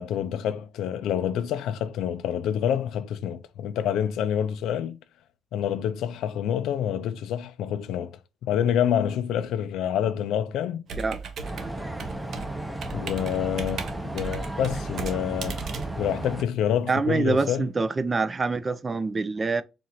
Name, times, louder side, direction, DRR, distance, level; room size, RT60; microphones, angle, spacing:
voice 1, 0.0-5.0 5.5-10.8 12.9-13.8 14.1-15.6 16.0-17.7, left 9 dB, 85° left, 0.4 m, -27 dB
Computer keyboard, 10.9-16.8, right 5 dB, 65° right, 0.8 m, -37 dB
sound 1, 11.4-16.4, right 1 dB, 10° right, 0.8 m, -34 dB
voice 2, 16.9-19.6, right 4 dB, 30° right, 0.4 m, -25 dB
4.3 x 2.5 x 2.7 m
cardioid pair, 90°, 0 cm